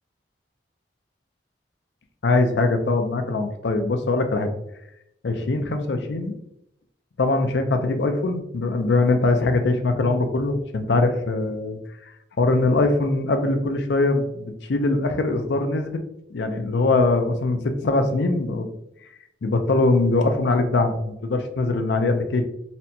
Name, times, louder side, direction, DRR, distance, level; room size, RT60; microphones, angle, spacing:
voice 1, 2.2-4.5 5.2-6.3 7.2-11.8 12.4-16.0 16.3-18.7 19.4-22.4, left 2 dB, 75° left, 6 dB, 0.5 m, -22 dB
4.1 x 2.2 x 2.6 m, 0.80 s
head